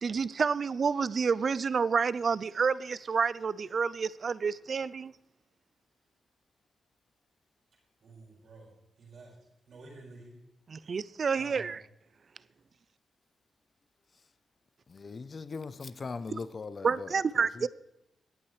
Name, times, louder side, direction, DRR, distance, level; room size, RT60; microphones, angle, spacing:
voice 1, 0.0-5.1 10.7-11.8 16.8-17.7, right 5 dB, 55° right, 0.4 m, -29 dB
voice 2, 8.0-9.4 9.7-10.4 11.3-11.7, right 3 dB, 70° right, 5.3 m, -50 dB
voice 3, 14.9-17.7, left 4 dB, 50° left, 0.7 m, -40 dB
20.5 x 8.7 x 3.2 m
cardioid pair, 55°, 0 cm